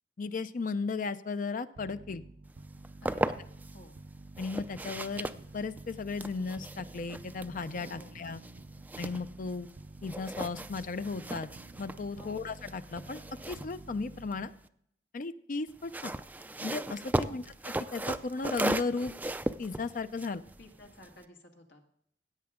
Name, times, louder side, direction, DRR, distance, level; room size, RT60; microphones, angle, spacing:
voice 1, 0.2-2.2 4.4-5.3 5.5-8.4 9.0-9.7 10.0-11.5 11.8-14.5 15.1-16.1 16.6-19.1 19.6-20.4, left 4 dB, 50° left, 12 dB, 0.5 m, -35 dB
sound 1, 1.8-14.7, right 2 dB, 60° right, 0.6 m, -50 dB
sound 2, 2.6-3.8 4.3-9.8 10.0-14.7 15.7-21.2, right 1 dB, 10° right, 0.4 m, -37 dB
voice 2, 3.0-3.5 3.7-4.0 7.8-8.2 12.2-12.5 17.2-17.4 20.6-21.8, left 1 dB, 85° left, 3 dB, 2.0 m, -52 dB
16.0 x 8.7 x 3.6 m, 0.68 s
head